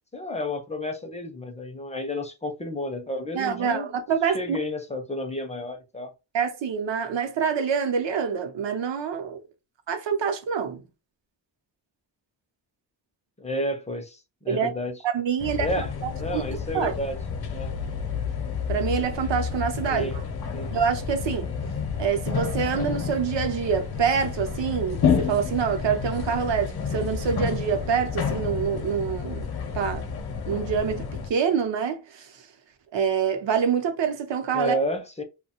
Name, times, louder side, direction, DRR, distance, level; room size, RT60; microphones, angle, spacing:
voice 1, 0.1-3.9 4.3-6.1 13.4-15.0 15.6-15.9 16.2-17.2 17.5-17.7 19.9-20.2 20.5-20.7 34.5-35.2, left 1 dB, 15° left, 0.4 m, -31 dB
voice 2, 3.3-4.6 6.3-9.4 9.9-10.8 14.5-14.7 15.0-15.7 16.0-16.4 16.7-16.9 18.7-20.1 20.7-21.5 22.0-29.5 29.7-30.0 30.5-32.3 32.9-34.8, right 7 dB, 75° right, 0.7 m, -26 dB
sound 1, 15.4-31.3, left 6 dB, 60° left, 0.7 m, -30 dB
2.6 x 2.2 x 2.8 m
wide cardioid pair, 125°, 44 cm